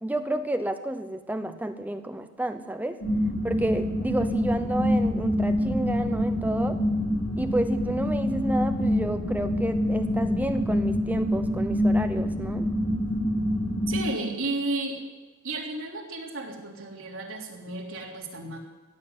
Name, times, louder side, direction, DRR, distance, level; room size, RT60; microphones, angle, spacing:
voice 1, 0.0-3.0 3.4-6.8 7.4-12.7, right 1 dB, 10° right, 8 dB, 0.7 m, -30 dB
sound 1, 3.0-14.0, equal, 75° left, 6.4 m, -26 dB
voice 2, 13.9-15.0 15.4-18.6, right 2 dB, 70° right, -1 dB, 3.3 m, -33 dB
17.0 x 7.7 x 9.6 m, 1.2 s
head